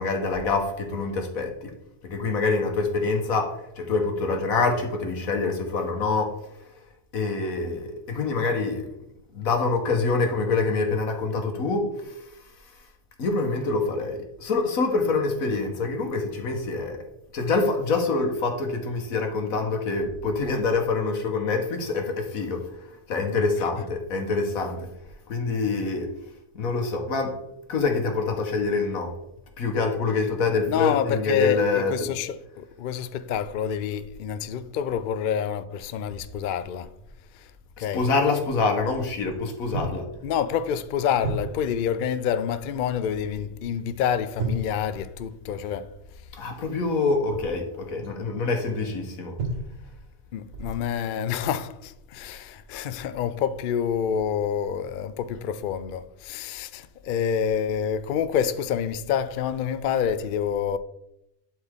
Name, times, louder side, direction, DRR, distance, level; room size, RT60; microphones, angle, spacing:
voice 1, 0.0-1.7 2.0-6.4 7.1-8.9 9.3-12.2 13.2-17.0 17.3-22.7 23.1-24.9 25.3-26.1 26.5-27.4 27.7-29.1 29.6-32.1 37.8-40.1 46.4-49.3, left 3 dB, 90° left, 1.6 m, -26 dB
voice 2, 30.7-36.9 37.8-38.1 40.2-45.9 50.3-60.8, left 8 dB, 70° left, 0.5 m, -27 dB
sound 1, 36.1-36.4 37.0-37.1 37.9-38.1 38.9-39.4 39.7-40.1 40.5-40.7 41.2-41.9 43.2-43.5 43.8-43.9 44.4-45.6 47.1-48.2 49.4-50.1 50.5-50.9 51.4-51.6, right 2 dB, 70° right, 1.6 m, -34 dB
11.5 x 4.4 x 3.6 m
omnidirectional pair, 1.4 m